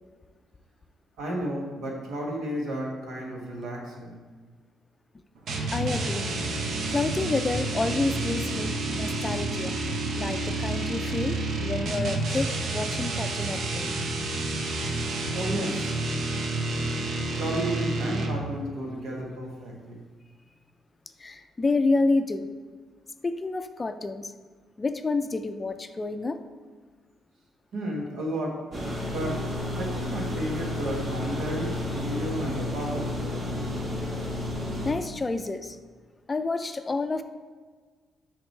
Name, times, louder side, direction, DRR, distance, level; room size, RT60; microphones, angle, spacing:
voice 1, 1.2-4.2 15.3-15.9 17.3-20.0 27.7-28.6 29.0-29.4 29.7-33.4, right 1 dB, 80° right, -2 dB, 1.4 m, -33 dB
sound 1, 5.5-18.5, right 2 dB, 65° right, 0.7 m, -29 dB
voice 2, 5.7-6.3 6.9-9.8 10.2-14.0 16.9-17.0 21.2-22.5 23.2-24.3 24.8-26.4 34.8-35.8 36.3-37.2, left 3 dB, 25° left, 9 dB, 0.4 m, -29 dB
sound 2, 28.7-34.9, left 1 dB, 50° right, 1.5 m, -31 dB
6.1 x 5.1 x 3.2 m, 1.5 s
cardioid pair, 90°, 0 cm